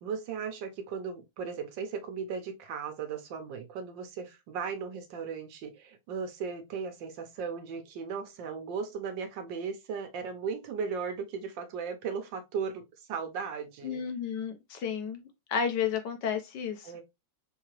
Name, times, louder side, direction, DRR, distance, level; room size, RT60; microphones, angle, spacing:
voice 1, 0.0-14.0 16.8-17.0, right 6 dB, 75° right, 1.4 m, -37 dB
voice 2, 13.8-15.2 15.5-16.9, left 7 dB, 70° left, 1.2 m, -32 dB
3.9 x 2.7 x 2.9 m
omnidirectional pair, 2.1 m